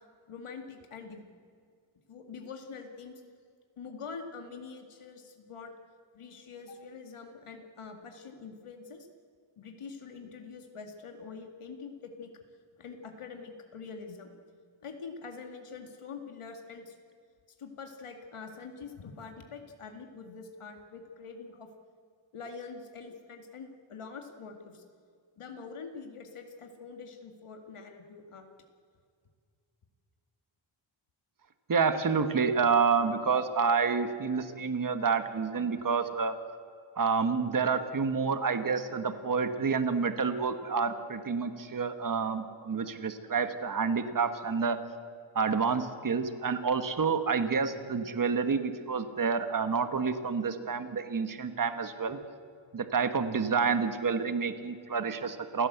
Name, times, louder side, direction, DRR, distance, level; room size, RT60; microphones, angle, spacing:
voice 1, 0.3-1.2 2.1-3.2 3.8-5.7 6.1-9.1 9.6-12.3 12.8-14.3 14.8-17.0 17.6-21.7 22.3-24.8 25.4-28.5, left 5 dB, 85° left, 4 dB, 2.2 m, -45 dB
voice 2, 31.7-36.3 37.0-44.8 45.3-52.2 52.7-55.7, right 5 dB, 40° right, 9 dB, 1.4 m, -28 dB
28.5 x 16.5 x 8.1 m, 2.2 s
wide cardioid pair, 160°, 49 cm